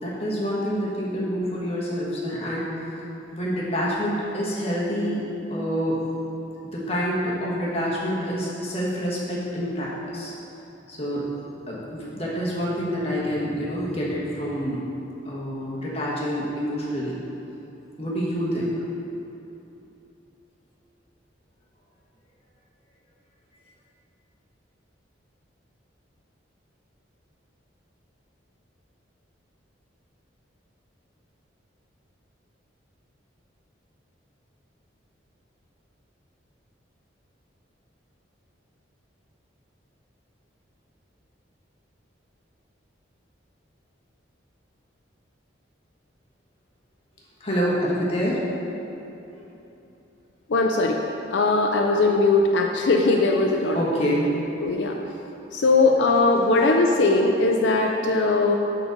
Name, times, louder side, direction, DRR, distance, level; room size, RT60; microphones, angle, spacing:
voice 1, 0.0-2.7 3.3-6.0 6.6-10.3 10.9-11.3 11.7-14.9 15.2-17.2 18.0-18.7 47.4-48.4 49.3-49.5 53.7-54.3, equal, 30° left, -6 dB, 1.2 m, -27 dB
voice 2, 50.5-51.0 51.3-53.8 54.6-54.9 55.5-58.6, left 3 dB, 65° left, 1 dB, 0.5 m, -20 dB
8.9 x 3.9 x 5.1 m, 2.9 s
head